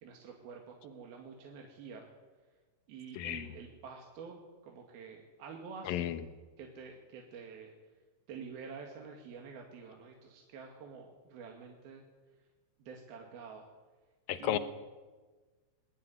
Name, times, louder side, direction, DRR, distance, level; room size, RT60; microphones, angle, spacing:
voice 1, 0.0-2.1 2.9-6.1 6.6-7.7 8.3-12.1 12.8-13.7 14.4-14.6, right 5 dB, 60° right, 1 dB, 3.5 m, -48 dB
voice 2, 3.2-3.5 5.8-6.2 14.3-14.6, left 12 dB, 75° left, 12 dB, 2.2 m, -33 dB
22.0 x 16.0 x 9.8 m, 1.3 s
omnidirectional pair, 5.3 m